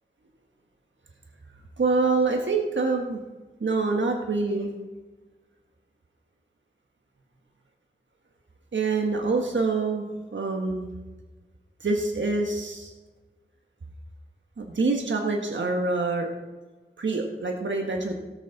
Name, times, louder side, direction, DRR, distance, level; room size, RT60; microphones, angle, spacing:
voice 1, 1.8-3.2 3.6-4.7 8.7-10.0 10.3-10.9 11.8-12.9 14.6-16.3 17.0-18.1, right 3 dB, 65° right, 2 dB, 1.3 m, -25 dB
17.5 x 6.2 x 4.0 m, 1.2 s
cardioid pair, 50°, 21 cm